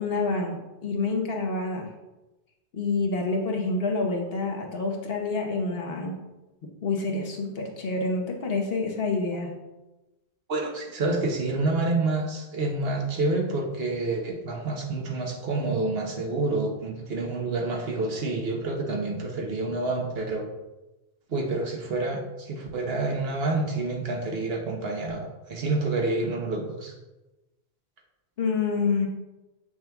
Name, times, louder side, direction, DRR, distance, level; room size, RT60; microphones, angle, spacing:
voice 1, 0.0-1.9 2.7-6.2 6.8-9.5 28.4-29.1, left 3 dB, 65° left, 2 dB, 1.2 m, -27 dB
voice 2, 10.5-20.5 21.3-25.2 25.5-26.9, right 2 dB, 65° right, 1 dB, 1.2 m, -28 dB
7.2 x 6.1 x 2.3 m, 1.0 s
omnidirectional pair, 1.1 m